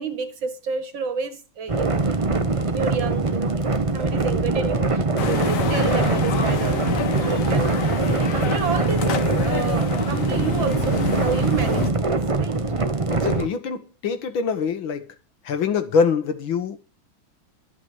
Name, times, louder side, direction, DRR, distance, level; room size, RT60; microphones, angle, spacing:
voice 1, 0.0-3.6 3.9-7.8 8.1-12.7, right 6 dB, 75° right, 2.6 m, -30 dB
sound 1, 1.7-13.5, right 3 dB, 40° right, 0.4 m, -22 dB
sound 2, 5.2-11.9, left 7 dB, 50° left, 1.2 m, -29 dB
voice 2, 13.1-15.1 15.4-16.8, left 5 dB, 85° left, 2.1 m, -24 dB
12.5 x 5.9 x 7.9 m
omnidirectional pair, 2.1 m